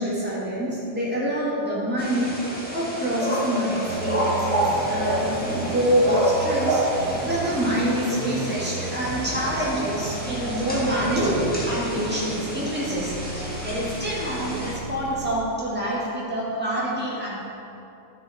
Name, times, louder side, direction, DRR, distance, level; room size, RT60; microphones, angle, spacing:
voice 1, 0.0-6.8 7.2-17.4, equal, 10° right, -7 dB, 1.8 m, -26 dB
sound 1, 2.0-14.7, right 1 dB, 5° left, 1.6 m, -29 dB
sound 2, 3.8-15.3, right 3 dB, 80° right, 1.4 m, -36 dB
10.0 x 5.7 x 4.2 m, 2.9 s
omnidirectional pair, 1.3 m